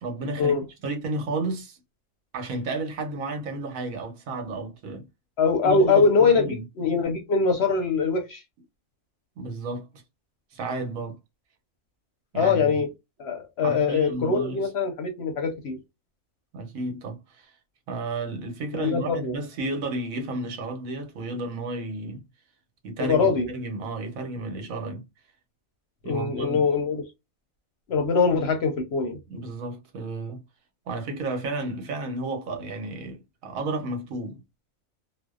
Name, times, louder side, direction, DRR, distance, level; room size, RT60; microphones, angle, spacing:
voice 1, 0.0-1.8 2.3-5.1 5.6-6.6 9.4-9.9 10.5-11.2 12.3-12.8 13.6-14.7 16.5-17.5 17.9-22.2 22.8-25.0 26.0-26.7 29.3-30.4 30.9-34.4, right 2 dB, 75° right, 1.1 m, -32 dB
voice 2, 5.4-8.4 12.3-12.9 13.2-15.8 18.7-19.3 23.0-23.5 26.0-27.0 27.9-29.2, left 4 dB, 60° left, 0.7 m, -23 dB
2.6 x 2.0 x 2.3 m
omnidirectional pair, 1.4 m